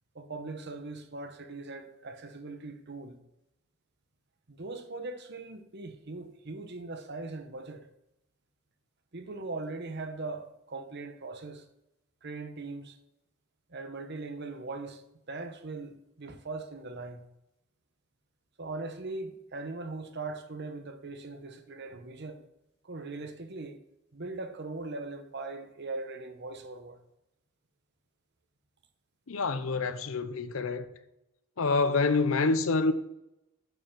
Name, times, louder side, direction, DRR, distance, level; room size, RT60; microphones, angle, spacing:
voice 1, 0.1-3.2 4.5-7.9 9.1-11.6 12.2-13.0 13.7-17.2 18.6-22.4 22.8-23.8 24.1-27.0, right 3 dB, 50° right, 1.0 m, -40 dB
voice 2, 29.3-30.9 31.6-32.9, left 3 dB, 70° left, 0.7 m, -27 dB
9.2 x 5.6 x 5.9 m
head